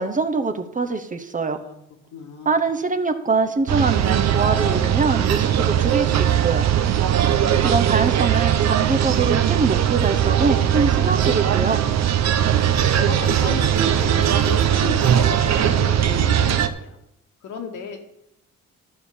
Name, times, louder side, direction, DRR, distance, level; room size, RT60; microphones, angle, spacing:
voice 1, 0.0-1.6 2.4-6.7 7.6-11.8, right 4 dB, 25° right, 7 dB, 0.9 m, -23 dB
voice 2, 2.1-2.6 12.1-12.6 12.9-17.0 17.4-18.0, left 6 dB, 80° left, 1 dB, 2.1 m, -34 dB
sound 1, 3.7-16.7, right 10 dB, 60° right, 0.8 m, -19 dB
12.5 x 4.6 x 7.1 m, 0.82 s
cardioid pair, 90°, 30 cm